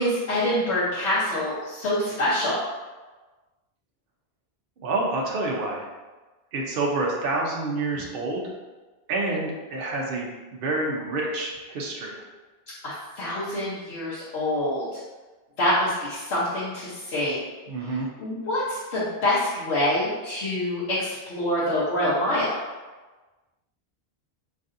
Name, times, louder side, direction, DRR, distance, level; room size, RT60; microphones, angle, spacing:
voice 1, 0.0-2.6 12.8-14.8 15.6-17.4 17.9-22.5, left 1 dB, 85° left, -11 dB, 1.2 m, -26 dB
voice 2, 4.8-5.9 6.5-8.5 9.1-10.3 10.6-12.1 17.7-18.1, right 2 dB, 65° right, -2 dB, 0.8 m, -28 dB
4.0 x 3.2 x 2.5 m, 1.2 s
omnidirectional pair, 1.1 m